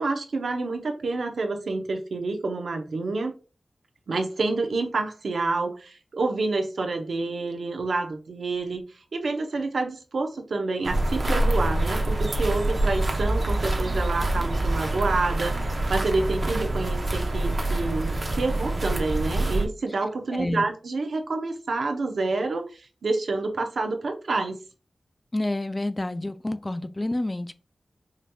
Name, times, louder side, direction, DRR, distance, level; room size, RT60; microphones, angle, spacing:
voice 1, 0.0-3.3 4.1-8.8 9.1-24.6, right 3 dB, 80° right, 0.7 m, -28 dB
sound 1, 10.8-19.7, right 1 dB, 40° right, 0.7 m, -26 dB
voice 2, 20.3-20.6 25.3-27.5, left 1 dB, 20° left, 0.3 m, -29 dB
5.0 x 2.7 x 2.2 m
wide cardioid pair, 115°, 0 cm